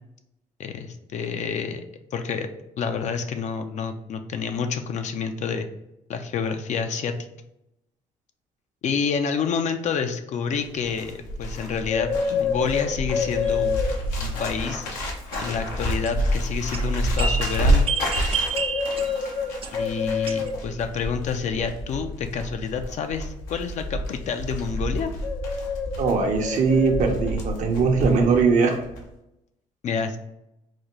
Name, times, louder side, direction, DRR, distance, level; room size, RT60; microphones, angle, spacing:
voice 1, 0.6-1.8 2.1-2.5 2.8-5.7 6.1-7.1 8.8-13.8 14.2-14.9 15.4-17.9 19.7-25.1 29.8-30.2, left 6 dB, 60° left, 7 dB, 0.4 m, -28 dB
Bird, 10.6-28.5 28.7-29.0, left 1 dB, 85° left, 0.7 m, -27 dB
sound 1, 13.4-13.6 15.3-16.3 16.7-19.8 20.3-20.5, right 5 dB, 40° right, 0.4 m, -30 dB
voice 2, 26.0-28.8, right 4 dB, 60° right, 3 dB, 0.7 m, -20 dB
4.0 x 2.2 x 3.1 m, 0.86 s
supercardioid pair, 65°, 14 cm